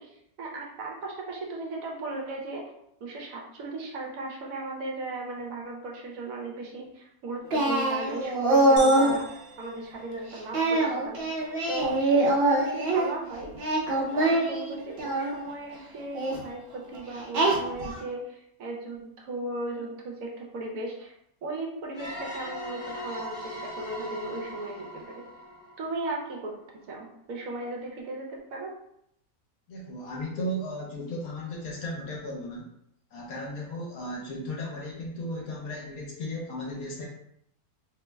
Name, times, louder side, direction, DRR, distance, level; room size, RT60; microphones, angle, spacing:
voice 1, 0.0-2.7 3.0-11.2 11.7-13.6 13.9-21.1 21.4-25.2 25.8-26.5 26.9-28.8, right 2 dB, 75° right, -1 dB, 1.0 m, -36 dB
Singing, 7.5-9.2 10.5-13.1 13.5-15.3 16.1-16.4 17.3-18.0, right 2 dB, 50° right, 0.8 m, -24 dB
sound 1, 8.8-10.7, right 1 dB, 60° left, 1.0 m, -42 dB
sound 2, 21.9-26.5, equal, 5° right, 0.5 m, -40 dB
voice 2, 29.7-32.7 33.1-37.1, left 1 dB, 75° left, -3 dB, 1.3 m, -35 dB
3.0 x 2.0 x 3.4 m, 0.75 s
omnidirectional pair, 1.6 m